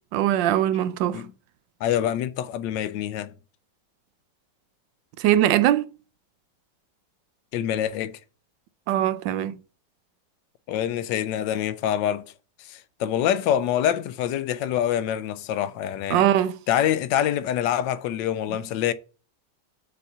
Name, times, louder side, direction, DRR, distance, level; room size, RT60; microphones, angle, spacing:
voice 1, 0.1-1.2 5.2-5.9 8.9-9.6 16.1-16.5, right 12 dB, 85° right, 1.3 m, -21 dB
voice 2, 1.8-3.3 7.5-8.2 10.7-12.3 12.6-16.3 16.7-18.9, left 10 dB, 80° left, 1.2 m, -25 dB
5.5 x 4.3 x 5.4 m
omnidirectional pair, 2.0 m